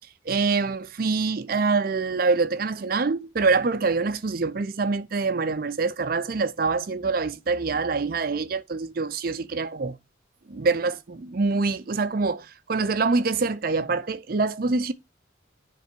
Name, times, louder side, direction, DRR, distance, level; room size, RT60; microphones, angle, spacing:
voice 1, 0.3-10.0 10.5-14.9, right 4 dB, 50° right, 0.5 m, -25 dB
10.0 x 3.4 x 4.4 m
head